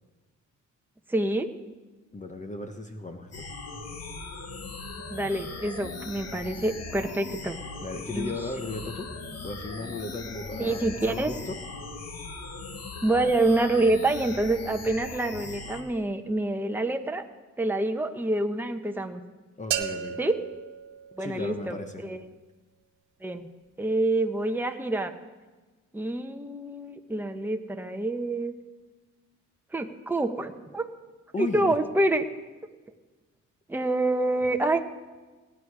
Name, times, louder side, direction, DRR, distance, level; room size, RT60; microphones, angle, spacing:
voice 1, 1.1-1.5 5.1-7.6 8.1-8.3 10.6-11.3 13.0-17.2 17.6-19.2 20.2-20.4 21.2-22.2 23.2-23.5 23.8-25.1 25.9-28.5 29.7-30.9 31.4-32.3 33.7-34.8, right 2 dB, 5° right, 5 dB, 1.0 m, -27 dB
voice 2, 2.1-3.5 7.8-9.1 9.4-11.6 19.6-20.2 21.2-22.0 31.3-31.7, left 3 dB, 25° left, 6 dB, 1.1 m, -36 dB
sound 1, 3.3-15.8, left 3 dB, 55° left, 1.9 m, -39 dB
sound 2, 19.7-21.7, right 9 dB, 85° right, 1.0 m, -34 dB
18.5 x 9.9 x 4.9 m, 1.3 s
cardioid pair, 90°, 30 cm